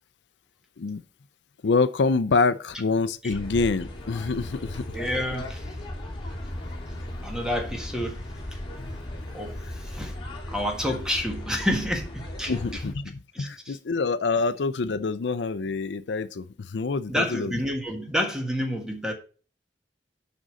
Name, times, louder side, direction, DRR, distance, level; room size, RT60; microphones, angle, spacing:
voice 1, 1.6-4.9 8.8-8.9 12.5-13.1 13.4-17.5, left 4 dB, 80° left, 0.5 m, -26 dB
sound 1, 3.3-12.9, left 1 dB, 30° left, 1.9 m, -36 dB
voice 2, 4.9-5.7 7.2-8.2 8.5-8.6 9.3-10.2 10.5-12.8 13.3-13.8 17.1-19.1, equal, 5° right, 1.5 m, -29 dB
6.3 x 5.3 x 6.4 m
head